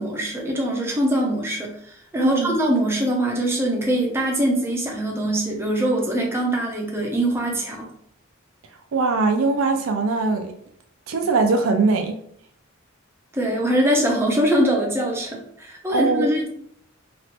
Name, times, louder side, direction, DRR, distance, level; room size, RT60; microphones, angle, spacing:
voice 1, 0.0-7.9 13.3-16.5, right 1 dB, 10° right, 0.5 m, -23 dB
voice 2, 2.2-2.6 8.9-10.5 11.1-12.2 15.9-16.3, right 4 dB, 75° right, 0.4 m, -21 dB
3.1 x 2.5 x 2.8 m
head